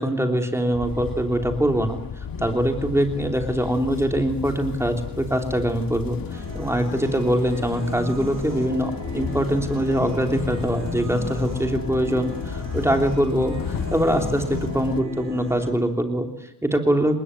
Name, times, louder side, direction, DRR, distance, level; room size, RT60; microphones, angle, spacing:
voice 1, 0.0-2.0 2.4-17.2, equal, 5° right, 4 dB, 3.2 m, -23 dB
sound 1, 0.7-15.0, left 6 dB, 60° left, 1.7 m, -33 dB
sound 2, 6.3-15.7, right 2 dB, 40° right, 7.6 m, -37 dB
29.0 x 19.5 x 9.7 m, 0.78 s
wide cardioid pair, 170°, 40 cm